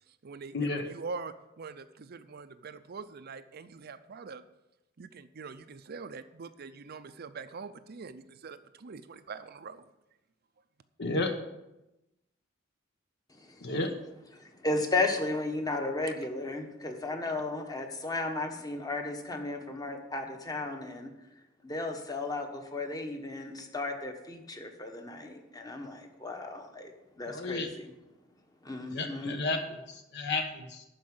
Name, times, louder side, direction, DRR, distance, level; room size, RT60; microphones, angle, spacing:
voice 1, 0.2-4.4 5.0-9.8, right 4 dB, 50° right, 11 dB, 0.5 m, -43 dB
voice 2, 11.0-11.3 13.6-13.9 27.3-27.7 28.9-30.8, left 3 dB, 60° left, 5 dB, 1.0 m, -32 dB
voice 3, 14.4-21.1 21.6-26.9 27.2-27.9 28.6-29.4, left 2 dB, 20° left, 4 dB, 1.2 m, -34 dB
12.0 x 4.8 x 7.7 m, 0.95 s
head